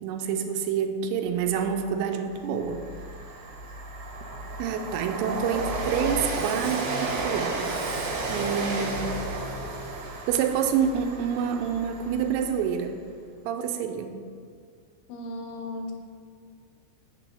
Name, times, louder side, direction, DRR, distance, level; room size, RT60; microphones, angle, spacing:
voice 1, 0.0-2.8 4.6-7.6 8.3-9.0 10.3-13.0 13.5-14.2, right 7 dB, 90° right, 5 dB, 3.2 m, -27 dB
Train, 1.8-1.9 2.3-12.7, right 3 dB, 70° right, 3.3 m, -33 dB
voice 2, 15.1-15.9, left 1 dB, 85° left, 3 dB, 2.7 m, -35 dB
7.6 x 6.0 x 7.1 m, 2.1 s
omnidirectional pair, 5.7 m